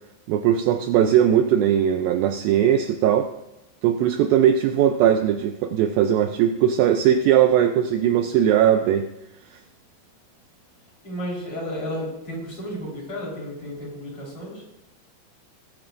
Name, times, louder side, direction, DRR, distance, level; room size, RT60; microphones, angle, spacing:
voice 1, 0.3-3.3 3.8-9.1, right 10 dB, 90° right, 7 dB, 2.0 m, -19 dB
voice 2, 11.0-14.5, equal, 30° left, -5 dB, 4.9 m, -32 dB
20.5 x 10.5 x 2.6 m, 0.90 s
omnidirectional pair, 4.8 m